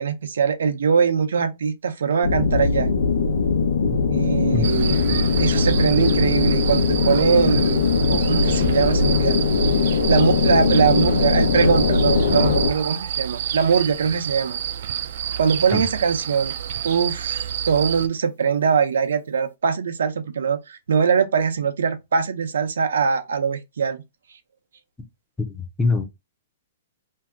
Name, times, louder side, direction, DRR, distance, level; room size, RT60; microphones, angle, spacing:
voice 1, 0.0-2.9 4.1-5.0 5.3-7.8 8.1-9.4 10.1-14.6 15.4-16.5 16.8-24.0, right 6 dB, 90° right, 0.6 m, -22 dB
sound 1, 2.2-12.7, left 4 dB, 90° left, 0.8 m, -20 dB
sound 2, 4.6-18.1, right 9 dB, 50° right, 0.3 m, -29 dB
voice 2, 25.5-26.0, left 3 dB, 5° left, 0.5 m, -24 dB
2.7 x 2.3 x 3.5 m
hypercardioid pair, 165°, 0 cm